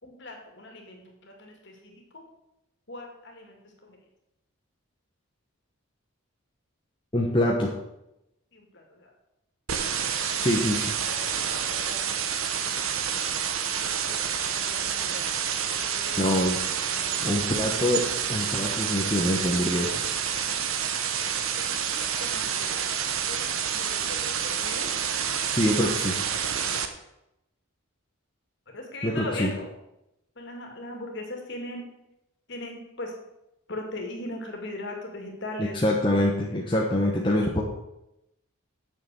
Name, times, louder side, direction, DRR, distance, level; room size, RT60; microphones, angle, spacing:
voice 1, 0.0-2.2 2.9-3.6 3.8-4.0 8.5-9.1 10.2-10.6 11.0-12.1 12.4-15.2 15.7-16.2 16.8-17.2 21.5-22.9 23.3-23.4 23.7-24.9 28.7-29.7 30.4-31.8 32.5-33.1 33.7-35.8, left 1 dB, 50° left, 2 dB, 2.4 m, -40 dB
voice 2, 7.1-7.7 10.4-10.9 16.2-16.6 17.2-20.1 25.5-26.2 29.0-29.5 35.7-37.6, left 1 dB, 20° left, -2 dB, 1.1 m, -25 dB
sound 1, 9.7-26.9, right 8 dB, 70° right, 1.0 m, -28 dB
8.5 x 6.8 x 7.7 m, 0.88 s
head